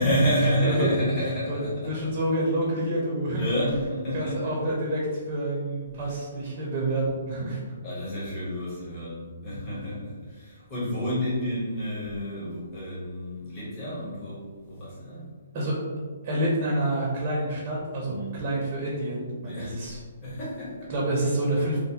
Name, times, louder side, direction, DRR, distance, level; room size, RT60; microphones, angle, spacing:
voice 1, 0.0-1.9 3.3-4.7 6.0-6.1 7.8-15.3 18.0-18.3 19.4-19.8 20.2-20.9, equal, 25° left, -10 dB, 1.2 m, -29 dB
voice 2, 1.5-3.5 4.1-7.6 15.5-15.8 16.2-20.0 20.9-21.8, right 1 dB, 35° right, -4 dB, 0.6 m, -28 dB
3.2 x 2.1 x 2.8 m, 1.5 s
hypercardioid pair, 160°, 0 cm